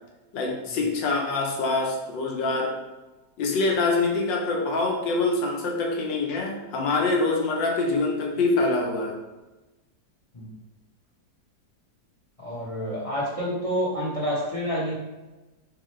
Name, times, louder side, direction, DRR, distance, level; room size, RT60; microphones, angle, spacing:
voice 1, 0.3-2.8 3.4-9.2, left 3 dB, 80° left, 0 dB, 1.5 m, -25 dB
voice 2, 12.4-15.0, equal, 30° left, -6 dB, 0.7 m, -28 dB
4.9 x 3.4 x 3.1 m, 1.1 s
omnidirectional pair, 2.0 m